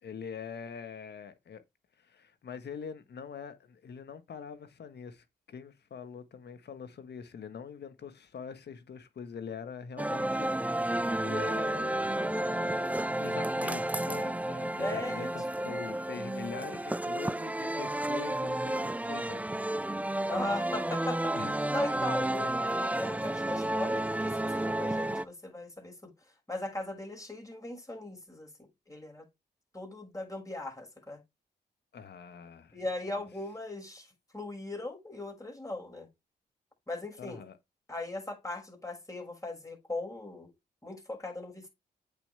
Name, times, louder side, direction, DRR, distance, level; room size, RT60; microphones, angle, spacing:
voice 1, 0.0-1.6 2.0-20.9 21.3-21.5 22.2-22.3 31.9-32.8 33.1-33.2 37.2-37.6, left 6 dB, 70° left, 1.5 m, -44 dB
sound 1, 10.0-25.2, right 1 dB, 10° right, 0.6 m, -31 dB
voice 2, 14.8-15.3 15.6-15.7 20.3-21.3 21.7-26.1 26.5-28.5 28.9-29.3 29.7-31.2 32.7-36.1 36.9-37.4 37.9-40.5 40.8-41.7, left 2 dB, 20° left, 6.2 m, -38 dB
8.2 x 6.9 x 3.5 m
supercardioid pair, 55°, 18 cm